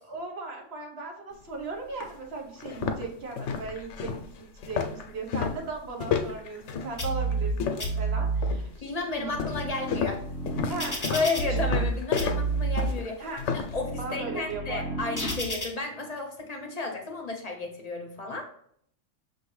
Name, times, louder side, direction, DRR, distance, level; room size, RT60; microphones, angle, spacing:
voice 1, 0.1-9.3 10.7-11.7 13.2-13.4 14.0-15.1, right 3 dB, 60° right, 1 dB, 1.2 m, -38 dB
sound 1, 1.4-1.5 2.0-2.1 2.6-8.0 8.4-8.8 9.4-13.8, left 6 dB, 80° left, 0.9 m, -32 dB
sound 2, 7.0-7.5 7.8-8.5 9.1-11.9 12.2-12.9 13.5-15.7, right 3 dB, 15° left, 1.0 m, -30 dB
voice 2, 8.8-10.2 11.1-13.3 13.7-18.4, left 3 dB, 40° left, 1 dB, 0.7 m, -32 dB
6.3 x 2.7 x 3.1 m, 0.66 s
omnidirectional pair, 1.3 m